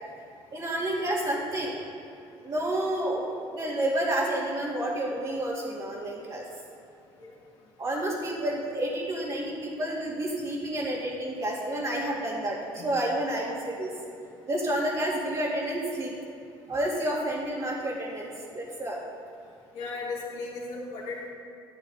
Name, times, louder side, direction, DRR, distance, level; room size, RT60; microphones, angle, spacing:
voice 1, 0.5-1.8 2.3-6.4 7.8-13.9 14.5-16.1 16.7-18.3 18.5-19.0, right 1 dB, 40° right, -8 dB, 2.5 m, -30 dB
voice 2, 19.7-21.3, left 3 dB, 65° left, -9 dB, 2.5 m, -36 dB
12.0 x 9.2 x 4.2 m, 2.7 s
hypercardioid pair, 65°, 12 cm